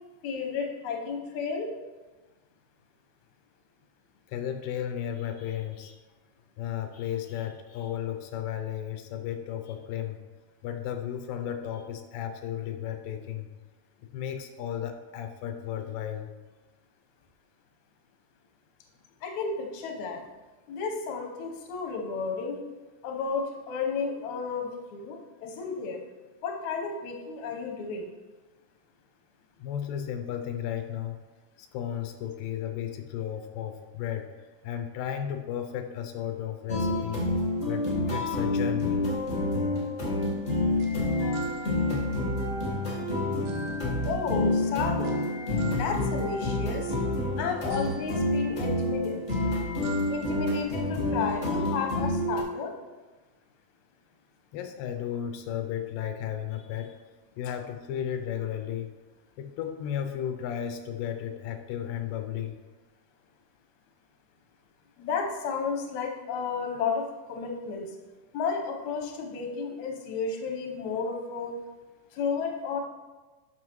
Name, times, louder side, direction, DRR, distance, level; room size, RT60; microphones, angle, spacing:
voice 1, 0.2-1.7 19.2-20.2 20.7-22.6 23.0-26.0 26.4-28.1 44.1-45.2 45.7-47.0 47.4-49.2 50.1-52.7 65.0-67.9 68.3-71.5 72.1-72.8, left 5 dB, 65° left, 2 dB, 2.2 m, -32 dB
voice 2, 4.3-6.0 6.6-10.2 10.6-13.5 14.1-16.3 29.6-31.2 31.6-39.1 54.5-57.0 57.4-58.9 59.4-62.6, left 10 dB, 85° left, 6 dB, 2.3 m, -34 dB
sound 1, 36.7-52.4, left 2 dB, 50° left, 0.8 m, -28 dB
sound 2, 40.2-50.7, right 4 dB, 70° right, 1.7 m, -46 dB
12.0 x 5.6 x 3.1 m, 1.2 s
omnidirectional pair, 3.9 m